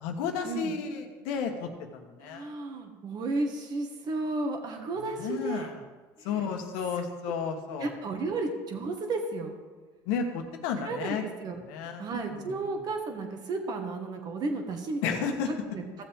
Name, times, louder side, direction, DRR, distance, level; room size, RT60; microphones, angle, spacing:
voice 1, 0.0-2.5 5.0-5.8 6.2-7.9 10.0-11.2 11.6-12.7 15.0-15.5, left 6 dB, 85° left, 4 dB, 1.3 m, -33 dB
voice 2, 2.2-5.7 6.2-6.4 7.8-9.5 10.8-15.8, right 3 dB, 50° right, 4 dB, 1.8 m, -33 dB
15.5 x 7.2 x 3.7 m, 1.3 s
supercardioid pair, 100°, 9 cm